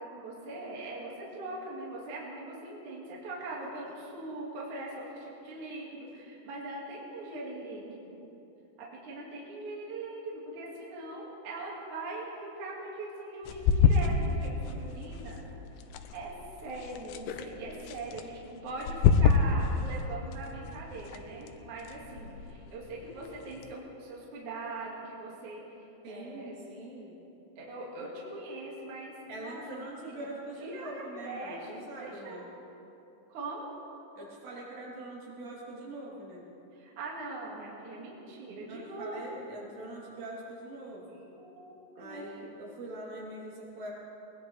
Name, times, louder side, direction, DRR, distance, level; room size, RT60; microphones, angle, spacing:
voice 1, 0.0-8.1 8.8-15.4 16.1-16.3 16.6-25.6 26.1-26.5 27.6-30.3 30.6-32.5 33.3-33.7 36.8-39.2 41.1-42.3, right 2 dB, 50° right, -5 dB, 3.2 m, -41 dB
sound 1, 13.4-23.7, left 5 dB, 90° left, 2.9 m, -30 dB
voice 2, 26.0-27.2 29.3-32.5 34.2-36.5 38.6-41.2 42.0-43.9, right 1 dB, 70° right, -6 dB, 5.6 m, -43 dB
20.5 x 20.5 x 3.4 m, 2.9 s
omnidirectional pair, 5.1 m